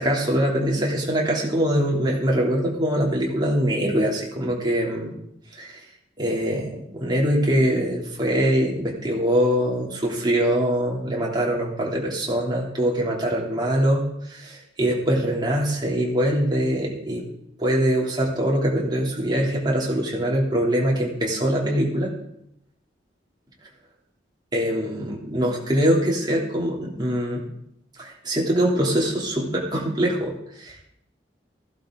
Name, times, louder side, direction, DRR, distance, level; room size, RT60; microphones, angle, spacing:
voice 1, 0.0-5.1 5.5-5.8 6.2-17.2 17.6-22.1 24.5-27.4 28.0-30.3 30.6-30.7, equal, 25° right, -3 dB, 3.2 m, -23 dB
16.0 x 11.5 x 3.9 m, 0.77 s
head